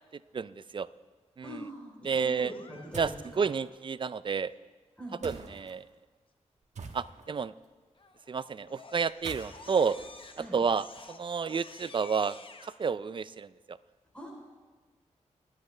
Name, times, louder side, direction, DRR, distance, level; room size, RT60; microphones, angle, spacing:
voice 1, 0.3-0.9 1.4-1.6 2.0-2.5 3.0-4.5 5.2-5.9 6.9-7.5 8.3-10.0 10.5-12.4 12.6-13.8, right 5 dB, 40° right, 16 dB, 0.4 m, -30 dB
voice 2, 1.4-3.5 5.0-5.2 10.4-10.6 14.1-14.3, equal, 10° left, -2 dB, 3.5 m, -43 dB
Crying sobbing, 2.3-3.3 8.0-8.3 8.7-12.8, left 4 dB, 45° left, 1.0 m, -51 dB
sound 1, 2.9-3.3 5.2-5.7 6.7-7.4 9.1-11.0, right 4 dB, 65° right, 1.3 m, -45 dB
26.5 x 10.5 x 3.3 m, 1.4 s
wide cardioid pair, 90°, 13 cm